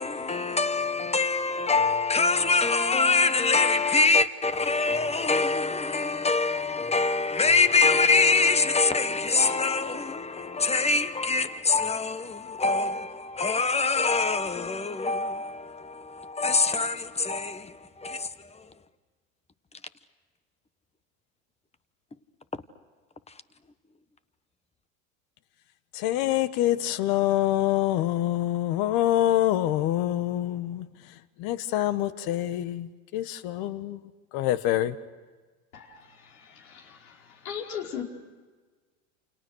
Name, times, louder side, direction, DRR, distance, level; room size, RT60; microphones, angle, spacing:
voice 1, 0.0-18.7, left 4 dB, 15° left, 1.2 m, -24 dB
voice 2, 25.9-35.0, left 13 dB, 60° left, 1.6 m, -26 dB
voice 3, 37.4-38.0, left 8 dB, 85° left, 5.0 m, -33 dB
29.0 x 28.5 x 6.4 m
supercardioid pair, 105°, 42 cm